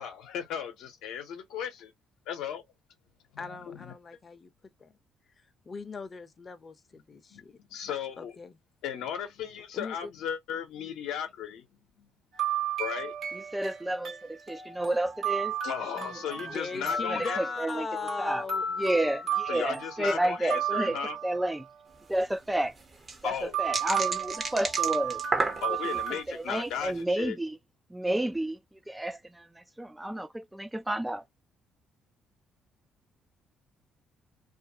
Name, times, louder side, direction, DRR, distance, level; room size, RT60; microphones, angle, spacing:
voice 1, 0.0-1.9 2.3-2.6 3.3-3.9 7.3-7.4 7.7-8.4 8.8-11.6 12.0-12.1 12.8-13.1 15.6-17.4 19.5-21.2 23.2-23.6 25.6-27.4, left 8 dB, 75° left, 0.7 m, -36 dB
voice 2, 3.4-5.0 5.7-7.6 8.2-8.6 9.7-10.1 16.4-18.7, left 4 dB, 35° left, 0.6 m, -39 dB
sound 1, 12.3-21.7 23.5-26.2, right 7 dB, 65° right, 1.1 m, -34 dB
voice 3, 13.5-15.6 15.9-16.4 16.8-17.9 18.2-18.5 18.8-21.7 22.1-22.7 23.2-25.2 25.7-27.6 27.9-28.6 28.9-31.2, right 1 dB, 10° right, 0.3 m, -31 dB
sound 2, 21.9-22.0 22.2-22.3 22.8-26.0 26.6-26.9, right 3 dB, 35° right, 0.8 m, -32 dB
2.5 x 2.2 x 2.6 m
supercardioid pair, 70°, 0 cm